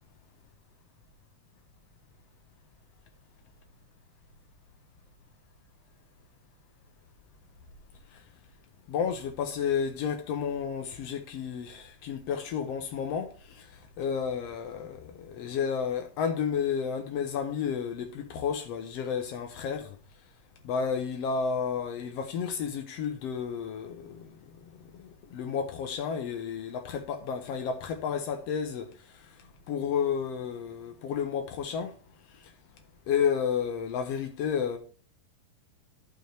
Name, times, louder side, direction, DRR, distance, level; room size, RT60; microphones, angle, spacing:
voice 1, 8.9-19.9 20.6-24.3 25.0-28.9 29.7-31.9 33.1-34.8, left 7 dB, 90° left, 1.4 m, -31 dB
11.5 x 6.2 x 3.4 m
omnidirectional pair, 4.0 m